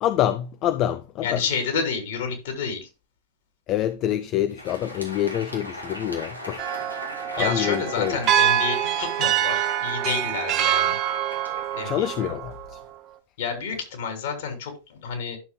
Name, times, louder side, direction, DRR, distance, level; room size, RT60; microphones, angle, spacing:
voice 1, 0.0-1.4 3.7-6.6 7.4-8.2 11.8-12.8, left 11 dB, 35° left, 0.5 m, -26 dB
voice 2, 1.2-2.9 7.4-11.0 11.7-12.3 13.4-15.4, left 6 dB, 55° left, 3.0 m, -30 dB
Crowd, 4.4-12.8, left 1 dB, 90° left, 2.6 m, -39 dB
sound 1, 6.6-12.8, right 10 dB, 35° right, 0.9 m, -25 dB
11.5 x 6.8 x 2.2 m
figure-of-eight pair, 90°, 0 cm